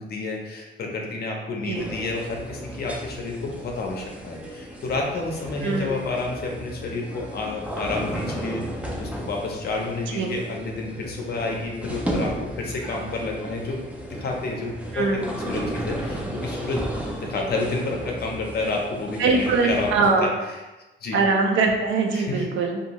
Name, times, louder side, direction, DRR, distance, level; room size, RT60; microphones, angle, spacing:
voice 1, 0.0-12.3 12.6-13.8 14.1-16.8 17.1-20.3 21.0-21.2 22.1-22.5, left 3 dB, 50° left, 0 dB, 0.5 m, -30 dB
sound 1, 1.7-20.1, right 1 dB, 5° right, 0.3 m, -34 dB
voice 2, 19.2-20.3 21.1-22.8, right 4 dB, 70° right, 2 dB, 0.5 m, -22 dB
2.6 x 2.3 x 2.9 m, 1.1 s
wide cardioid pair, 150°, 20 cm